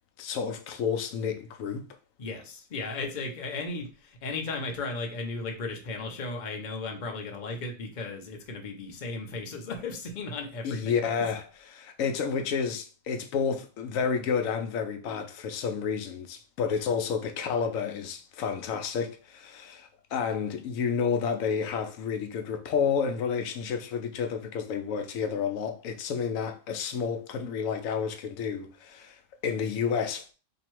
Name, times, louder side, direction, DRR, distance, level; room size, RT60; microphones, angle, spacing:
voice 1, 0.2-1.8 10.6-30.3, left 6 dB, 85° left, 1.0 m, -30 dB
voice 2, 2.2-11.2, left 3 dB, 45° left, 0.8 m, -35 dB
3.0 x 2.7 x 4.4 m
omnidirectional pair, 1.4 m